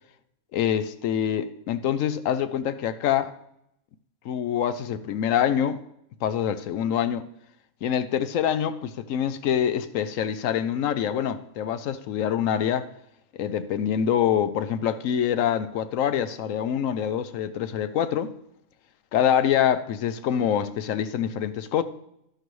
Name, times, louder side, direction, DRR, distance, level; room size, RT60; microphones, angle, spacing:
voice 1, 0.5-3.4 4.2-5.8 6.2-7.2 7.8-12.9 13.4-18.3 19.1-21.8, left 9 dB, 70° left, 0.9 m, -25 dB
11.5 x 11.5 x 3.1 m
omnidirectional pair, 1.5 m